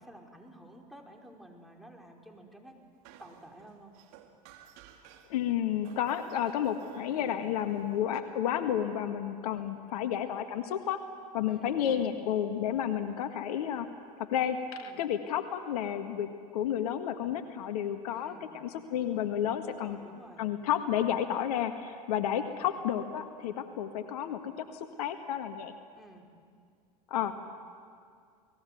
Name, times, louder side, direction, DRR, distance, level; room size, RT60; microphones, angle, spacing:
voice 1, 0.0-2.8 3.2-3.9 7.1-7.5 11.5-12.2 14.8-15.1 18.1-18.5 19.6-20.5 22.4-22.7 25.9-26.3 27.1-27.3, right 1 dB, ahead, 0 dB, 5.1 m, -52 dB
sound 1, 3.0-5.4 5.8-8.2, right 9 dB, 60° right, 2.7 m, -55 dB
voice 2, 5.3-11.0 11.3-13.9 14.3-20.0 20.4-25.7 27.1-27.3, left 10 dB, 70° left, 8 dB, 1.7 m, -31 dB
29.5 x 19.5 x 9.4 m, 2.2 s
hypercardioid pair, 80°, 20 cm